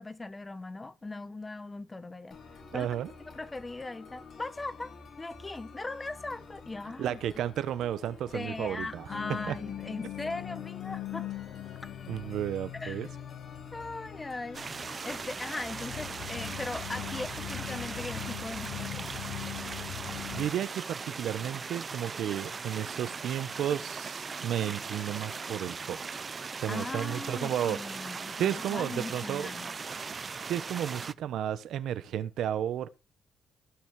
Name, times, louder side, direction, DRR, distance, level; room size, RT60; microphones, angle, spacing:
voice 1, 0.0-2.4 2.7-2.9 3.3-4.9 5.2-7.2 8.3-11.3 12.7-13.0 13.7-19.1 26.7-29.7, left 2 dB, 20° left, 1.1 m, -39 dB
sound 1, 2.3-18.3, left 4 dB, 50° left, 5.1 m, -49 dB
voice 2, 2.7-3.1 7.0-9.1 9.5-9.6 12.1-13.1 20.3-26.1 26.6-27.8 28.4-29.5 30.5-32.9, right 10 dB, 75° right, 1.1 m, -33 dB
sound 2, 9.1-20.5, left 13 dB, 80° left, 0.9 m, -41 dB
sound 3, 14.5-31.1, right 5 dB, 35° right, 0.6 m, -39 dB
16.5 x 6.3 x 4.8 m
cardioid pair, 90°, 0 cm